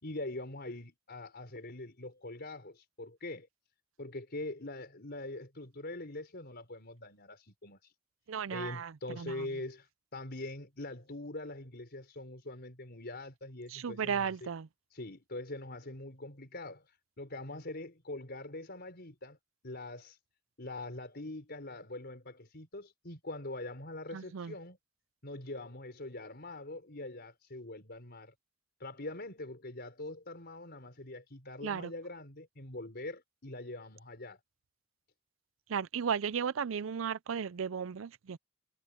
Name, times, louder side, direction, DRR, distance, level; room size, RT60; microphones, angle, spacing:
voice 1, 0.0-3.5 4.0-7.9 8.5-14.5 14.9-19.4 19.6-20.2 20.6-24.8 25.2-28.3 28.8-34.4, left 2 dB, 55° left, 4.8 m, -43 dB
voice 2, 8.3-9.5 13.7-14.7 24.1-24.5 31.6-31.9 35.7-38.4, right 7 dB, 80° right, 0.5 m, -35 dB
head